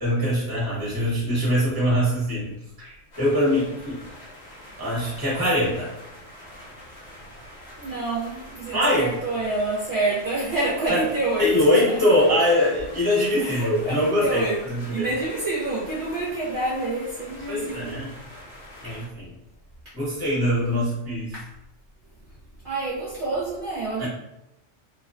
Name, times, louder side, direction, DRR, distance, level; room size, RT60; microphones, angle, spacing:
voice 1, 0.0-2.5 2.8-4.0 4.8-5.9 8.7-9.1 10.9-11.0 11.4-14.4 14.7-15.1 17.5-18.1 18.8-19.3 19.9-21.3 24.0-24.1, left 1 dB, 20° right, -7 dB, 0.9 m, -22 dB
sound 1, 3.1-19.1, left 1 dB, 40° left, 0.7 m, -45 dB
voice 2, 7.8-11.8 13.4-18.0 18.8-19.0 21.3-21.5 22.6-24.1, right 2 dB, 50° right, -9 dB, 0.8 m, -28 dB
2.3 x 2.3 x 2.4 m, 0.89 s
omnidirectional pair, 1.3 m